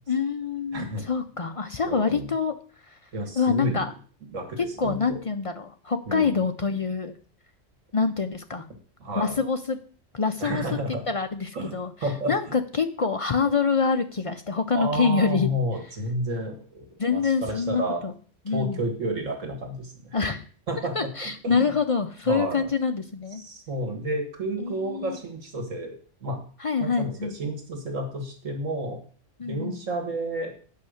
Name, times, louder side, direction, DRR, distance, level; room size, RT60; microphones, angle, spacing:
voice 1, 0.1-2.5 2.9-3.0 3.4-3.9 4.8-7.2 7.9-8.7 9.2-9.8 10.1-10.6 11.1-11.9 12.3-15.5 17.0-18.1 18.5-18.8 20.1-20.4 20.9-23.4 24.6-25.2 26.6-27.3 29.4-29.8, left 5 dB, 45° left, 7 dB, 0.4 m, -26 dB
voice 2, 0.7-1.1 1.8-2.3 3.1-3.9 4.3-5.2 6.1-6.4 9.0-9.4 10.4-11.1 11.5-11.8 12.0-12.3 14.7-18.0 18.5-20.2 20.7-21.7 22.3-22.7 23.4-26.0 26.2-26.4 26.8-29.0 29.4-30.5, right 1 dB, 85° right, 3 dB, 2.2 m, -31 dB
8.4 x 5.5 x 6.4 m, 0.42 s
omnidirectional pair, 1.3 m